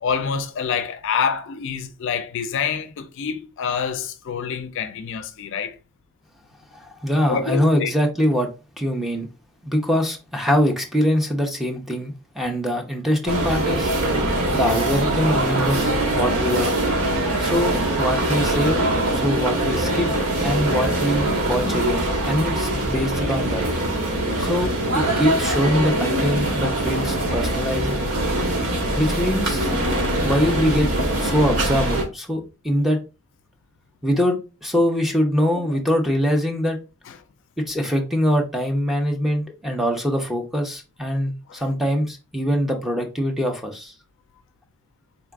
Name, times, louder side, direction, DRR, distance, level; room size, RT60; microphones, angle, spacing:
voice 1, 0.0-5.8 7.3-7.9 37.1-37.2 41.5-41.6, left 6 dB, 55° left, 0.4 m, -26 dB
voice 2, 6.7-8.5 8.8-9.3 9.6-13.9 14.5-16.7 17.4-20.1 20.4-23.6 24.4-28.0 29.0-29.7 30.2-30.9 31.2-33.0 34.0-36.8 37.6-43.9, equal, ahead, 0.6 m, -23 dB
sound 1, 13.3-32.0, right 1 dB, 90° right, 1.4 m, -23 dB
3.9 x 2.4 x 3.4 m
head